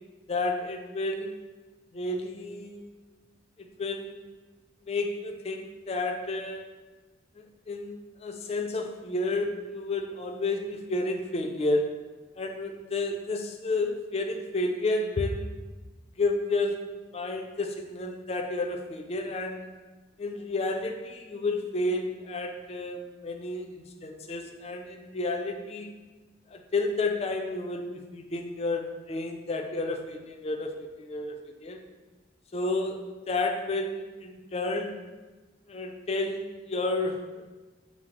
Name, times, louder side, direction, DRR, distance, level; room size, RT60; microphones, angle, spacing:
voice 1, 0.3-1.4 1.9-2.8 3.6-4.2 4.9-6.7 7.4-12.0 12.4-15.5 16.2-19.7 20.2-25.9 26.5-31.8 32.5-35.0 35.7-37.4, left 2 dB, 35° left, 3 dB, 0.4 m, -31 dB
5.8 x 2.0 x 3.6 m, 1.2 s
head